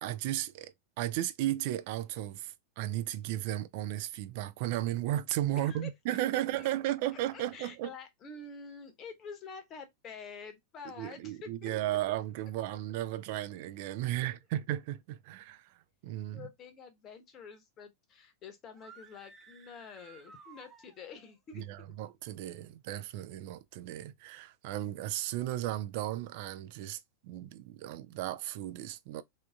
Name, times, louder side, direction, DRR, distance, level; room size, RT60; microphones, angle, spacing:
voice 1, 0.0-7.9 11.0-15.8 16.0-16.5 21.5-29.2, right 14 dB, 50° right, 0.4 m, -35 dB
voice 2, 5.6-6.9 7.3-11.7 16.3-21.6, left 5 dB, 30° left, 0.9 m, -48 dB
sound 1, 18.7-21.3, right 5 dB, 20° right, 0.8 m, -56 dB
3.3 x 2.8 x 2.3 m
figure-of-eight pair, 90°, 0 cm